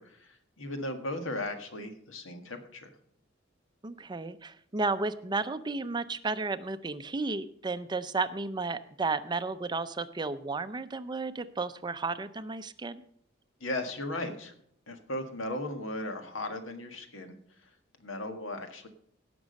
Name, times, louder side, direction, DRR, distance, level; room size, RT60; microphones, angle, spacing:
voice 1, 0.0-2.9 13.6-14.5 14.9-17.4 17.6-17.7 18.0-18.9, left 1 dB, 80° left, 7 dB, 1.6 m, -37 dB
voice 2, 3.8-13.0, right 3 dB, 20° right, 12 dB, 0.5 m, -33 dB
17.0 x 6.1 x 5.2 m, 0.65 s
head